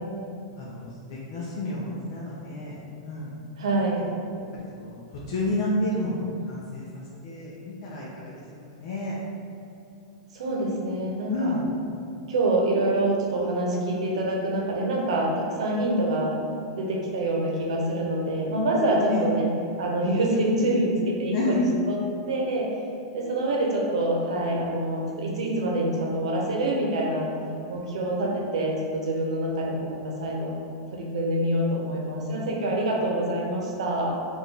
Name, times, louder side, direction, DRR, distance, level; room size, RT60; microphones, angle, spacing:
voice 1, 1.1-3.3 4.7-4.9 5.3-9.1 11.3-11.6 19.1-19.2 21.3-21.7, left 2 dB, 55° left, -6 dB, 0.7 m, -30 dB
voice 2, 3.6-4.1 10.3-11.6 12.3-16.3 16.8-19.5 19.8-22.0 22.3-22.7 23.1-27.3 27.7-30.5 30.9-34.2, right 1 dB, 80° right, -2 dB, 0.9 m, -26 dB
4.5 x 2.6 x 3.4 m, 2.7 s
supercardioid pair, 155°, 3 cm